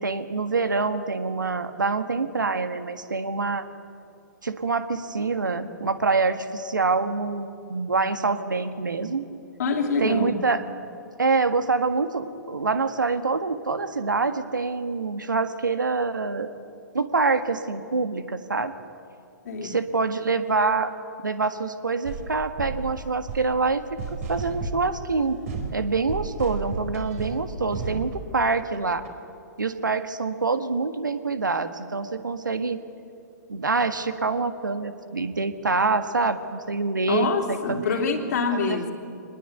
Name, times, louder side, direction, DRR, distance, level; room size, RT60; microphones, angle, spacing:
voice 1, 0.0-3.6 4.4-9.2 10.0-10.6 11.2-16.5 16.9-18.7 19.6-20.9 21.2-25.4 25.7-29.0 29.6-32.8 33.5-38.0 38.7-38.9, right 4 dB, 85° right, 9 dB, 1.6 m, -26 dB
voice 2, 9.6-10.4 19.4-19.8 37.1-38.9, left 4 dB, 60° left, 3 dB, 3.1 m, -25 dB
sound 1, 22.0-28.8 29.0-29.1, right 4 dB, 50° right, 4.5 m, -34 dB
24.0 x 20.5 x 8.3 m, 2.4 s
figure-of-eight pair, 115°, 10 cm